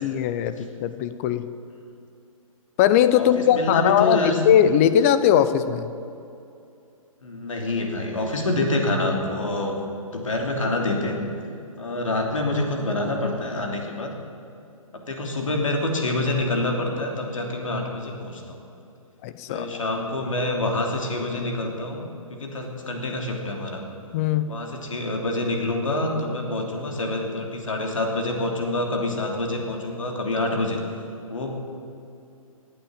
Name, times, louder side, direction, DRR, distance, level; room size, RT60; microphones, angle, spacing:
voice 1, 0.0-1.5 2.8-4.2 4.4-5.9 19.2-19.8 24.1-24.5, left 10 dB, 25° left, 12 dB, 0.6 m, -20 dB
voice 2, 3.2-4.4 7.2-9.8 10.1-11.2 11.8-14.1 15.1-18.6 19.5-23.8 24.5-30.8 31.3-31.7, left 2 dB, 65° left, 2 dB, 3.0 m, -26 dB
17.0 x 8.9 x 8.8 m, 2.6 s
figure-of-eight pair, 130°, 18 cm